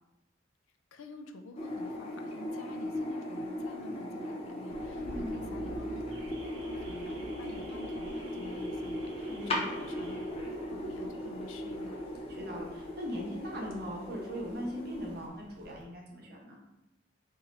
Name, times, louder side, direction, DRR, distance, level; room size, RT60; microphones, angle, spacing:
voice 1, 0.9-10.3 10.7-12.0, left 2 dB, 90° left, 5 dB, 0.4 m, -49 dB
sound 1, 1.6-15.3, left 1 dB, 30° left, 0.4 m, -38 dB
Car / Alarm, 4.7-15.8, right 1 dB, 75° right, 0.6 m, -51 dB
voice 2, 5.0-5.7 9.3-9.7 12.3-16.6, equal, 50° right, -2 dB, 0.8 m, -40 dB
2.7 x 2.6 x 4.2 m, 0.93 s
head